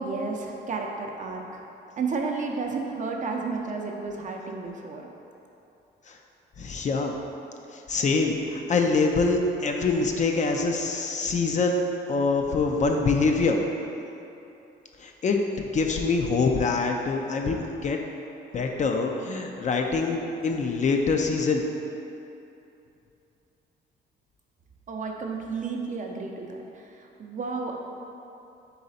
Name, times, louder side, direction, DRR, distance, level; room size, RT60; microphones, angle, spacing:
voice 1, 0.0-1.6 2.0-5.1 24.9-27.7, right 4 dB, 40° right, 1 dB, 0.5 m, -32 dB
voice 2, 6.6-7.1 7.7-11.8 12.1-13.6 15.0-18.0 18.5-21.6, left 4 dB, 40° left, 2 dB, 0.4 m, -25 dB
4.0 x 3.2 x 4.1 m, 2.8 s
cardioid pair, 90°, 20 cm